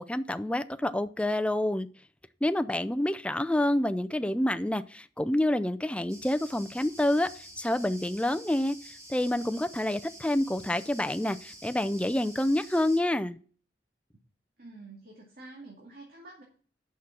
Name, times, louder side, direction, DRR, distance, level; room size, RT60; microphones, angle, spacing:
voice 1, 0.0-1.9 2.4-8.8 9.1-13.4, left 1 dB, 5° left, 11 dB, 0.4 m, -28 dB
sound 1, 6.1-13.0, right 1 dB, 20° right, 2.7 m, -48 dB
voice 2, 14.6-16.4, right 2 dB, 55° right, -2 dB, 2.3 m, -48 dB
8.4 x 6.3 x 5.9 m, 0.43 s
head